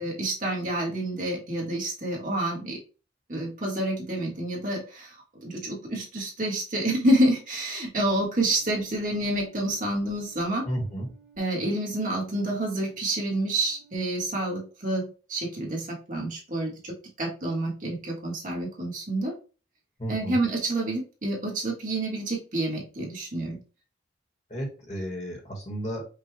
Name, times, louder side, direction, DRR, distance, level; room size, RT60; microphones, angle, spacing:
voice 1, 0.0-2.8 3.3-5.1 5.4-10.7 11.4-19.3 20.1-23.6, right 1 dB, 45° right, -2 dB, 1.4 m, -28 dB
sound 1, 8.5-14.0, right 6 dB, 5° right, 0.5 m, -57 dB
voice 2, 10.6-11.1 20.0-20.4 24.5-26.0, right 1 dB, 40° left, 0 dB, 1.2 m, -32 dB
5.3 x 2.3 x 3.3 m, 0.34 s
head